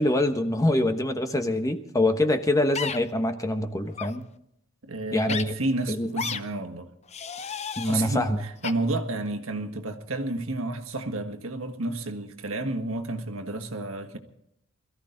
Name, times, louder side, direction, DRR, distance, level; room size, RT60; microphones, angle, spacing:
voice 1, 0.0-4.2 5.1-5.5 5.9-6.1 7.8-8.4, left 1 dB, 15° left, 1.1 m, -24 dB
sound 1, 2.8-3.0 3.9-4.1 5.3-5.4 6.2-6.4 7.1-8.0 8.6-8.7, left 6 dB, 30° left, 0.7 m, -32 dB
voice 2, 4.8-6.9 7.4-7.5 7.9-14.2, right 2 dB, 75° right, 1.6 m, -31 dB
22.0 x 14.0 x 3.9 m
head